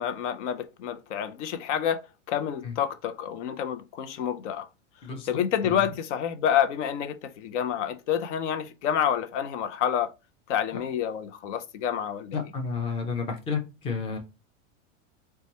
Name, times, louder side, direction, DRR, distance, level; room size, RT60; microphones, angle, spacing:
voice 1, 0.0-2.0 2.3-4.7 5.3-10.1 10.5-12.4, left 9 dB, 65° left, 0.6 m, -28 dB
voice 2, 12.3-14.2, left 5 dB, 15° left, 0.5 m, -31 dB
4.3 x 2.3 x 2.7 m
supercardioid pair, 150°, 39 cm